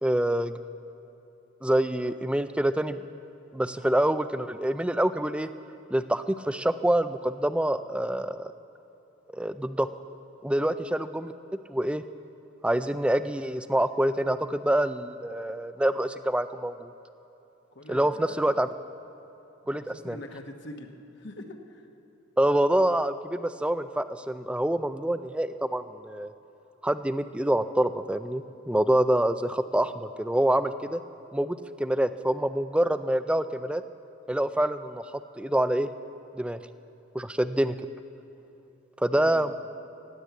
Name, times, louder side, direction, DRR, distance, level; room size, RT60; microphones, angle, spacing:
voice 1, 0.0-0.6 1.6-3.0 3.5-5.5 5.9-8.5 9.3-9.9 10.4-11.3 11.7-12.0 12.6-16.9 17.9-18.7 19.7-20.2 22.4-26.3 26.8-31.0 31.3-33.8 34.3-35.1 35.4-35.9 36.4-36.6 37.1-37.8 39.0-39.5, right 1 dB, 5° right, 11 dB, 0.3 m, -26 dB
voice 2, 17.7-18.5 19.7-20.9 21.2-21.9 39.2-39.5, left 1 dB, 55° left, 4 dB, 1.2 m, -43 dB
16.5 x 10.5 x 8.2 m, 3.0 s
head